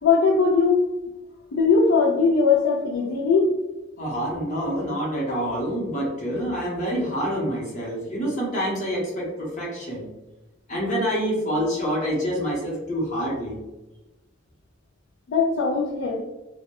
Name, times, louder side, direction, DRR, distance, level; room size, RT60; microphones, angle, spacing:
voice 1, 0.0-0.9 1.5-3.5 15.3-16.2, left 4 dB, 85° left, -2 dB, 0.4 m, -20 dB
voice 2, 4.0-10.1 10.7-13.6, equal, 40° left, -4 dB, 0.7 m, -27 dB
2.2 x 2.0 x 2.8 m, 1.1 s
head